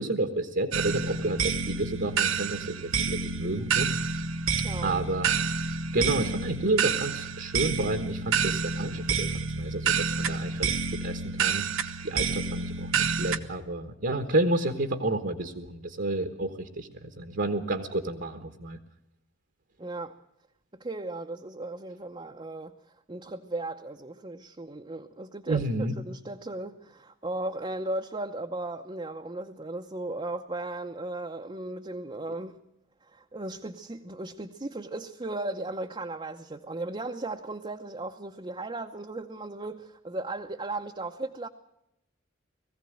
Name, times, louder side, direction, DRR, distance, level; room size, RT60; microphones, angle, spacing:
voice 1, 0.0-3.9 4.8-11.6 12.0-18.8 25.5-25.9, right 2 dB, 60° right, 1.3 m, -30 dB
sound 1, 0.7-13.4, right 5 dB, 75° right, 1.1 m, -29 dB
voice 2, 4.6-5.0 19.8-20.2 20.7-22.8 23.1-32.6 33.0-41.5, right 2 dB, 25° right, 0.8 m, -36 dB
20.0 x 15.5 x 9.0 m
head